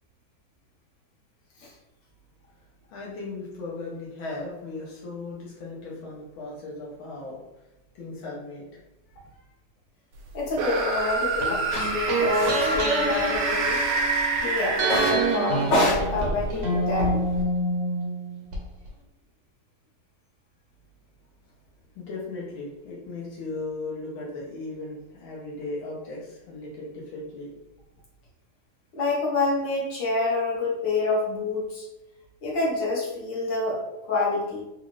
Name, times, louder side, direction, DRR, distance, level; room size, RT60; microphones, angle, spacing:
voice 1, 2.9-7.4 7.9-8.7 9.1-9.5 21.9-27.5, left 3 dB, 80° left, -5 dB, 1.6 m, -37 dB
voice 2, 10.3-13.8 14.4-17.2 28.9-31.9 32.4-33.8 34.1-34.6, left 3 dB, 65° left, -5 dB, 1.8 m, -27 dB
sound 1, 10.5-15.8, right 3 dB, 85° right, 1.5 m, -27 dB
sound 2, 11.4-14.4 14.8-18.6 18.8-18.9, right 2 dB, 60° right, 0.9 m, -27 dB
sound 3, 11.7-11.8 12.3-12.8 13.1-13.8 14.8-15.2 15.6-17.4, equal, 30° left, 0.8 m, -27 dB
4.1 x 2.5 x 3.0 m, 0.95 s
omnidirectional pair, 2.2 m